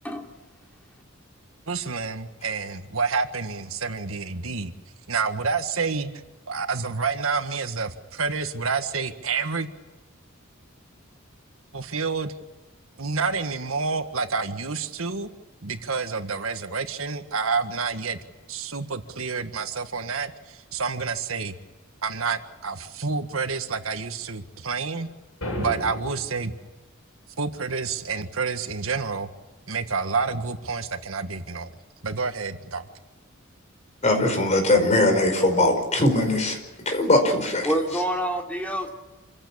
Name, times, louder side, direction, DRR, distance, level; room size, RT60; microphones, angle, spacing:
voice 1, 1.7-4.7 5.1-9.7 11.7-12.3 13.0-15.3 15.6-18.2 18.5-21.6 22.0-25.1 25.6-26.5 27.4-29.3 29.7-31.7 32.0-32.9, right 4 dB, 85° right, 1.7 m, -28 dB
sound 1, 25.4-26.4, equal, 80° left, 7.4 m, -32 dB
voice 2, 34.0-36.6 36.8-37.7, left 1 dB, 35° left, 5.0 m, -20 dB
voice 3, 37.6-38.9, right 1 dB, 5° left, 3.3 m, -26 dB
27.0 x 16.0 x 8.7 m
head